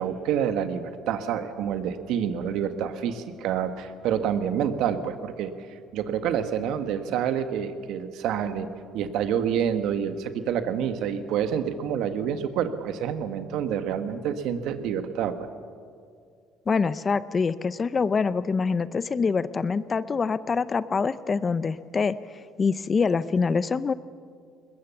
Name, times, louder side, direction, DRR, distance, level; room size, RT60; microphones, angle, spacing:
voice 1, 0.0-5.5 5.9-8.7 8.9-15.3, right 8 dB, 70° right, 9 dB, 1.4 m, -28 dB
voice 2, 16.7-22.2 22.6-23.9, left 5 dB, 30° left, 16 dB, 0.6 m, -25 dB
21.5 x 20.5 x 7.1 m, 2.2 s
cardioid pair, 115°, 0 cm